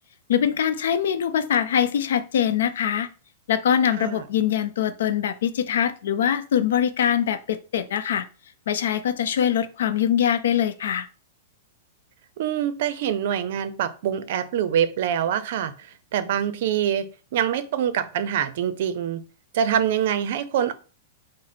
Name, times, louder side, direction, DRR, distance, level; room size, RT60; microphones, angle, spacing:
voice 1, 0.3-3.1 3.5-8.2 8.7-11.1, left 9 dB, 80° left, 0.5 m, -23 dB
voice 2, 12.4-15.7 16.1-17.0 17.3-19.2 19.5-20.7, right 9 dB, 60° right, 0.5 m, -24 dB
5.0 x 2.0 x 4.2 m
supercardioid pair, 145°, 0 cm